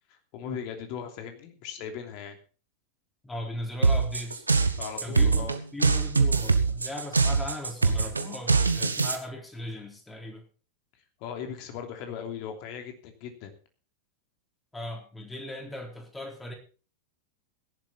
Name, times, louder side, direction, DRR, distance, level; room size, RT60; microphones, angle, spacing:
voice 1, 0.1-2.4 4.8-5.6 11.2-13.5, left 7 dB, 45° left, 5 dB, 3.0 m, -38 dB
voice 2, 3.2-4.5 5.0-10.5 14.7-16.5, left 1 dB, 10° left, 2 dB, 4.0 m, -38 dB
sound 1, 3.8-9.2, right 4 dB, 80° right, 1.3 m, -23 dB
16.5 x 11.5 x 4.2 m, 0.37 s
figure-of-eight pair, 90°, 0 cm